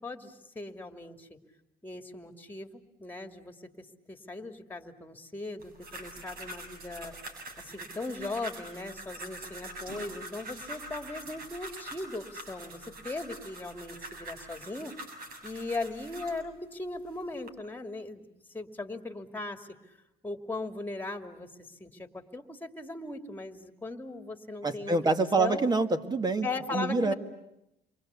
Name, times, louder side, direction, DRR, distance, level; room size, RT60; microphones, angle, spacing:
voice 1, 0.0-1.4 1.8-7.1 7.6-15.2 15.4-18.3 18.5-19.7 20.2-25.1 25.4-25.7 26.4-27.1, left 2 dB, 10° left, 6 dB, 2.8 m, -38 dB
sound 1, 5.6-16.4 17.0-17.5, right 1 dB, 60° right, 7.1 m, -44 dB
voice 2, 24.6-27.1, right 3 dB, 25° right, 8 dB, 2.0 m, -27 dB
29.0 x 23.5 x 8.4 m, 0.87 s
cardioid pair, 110°, 17 cm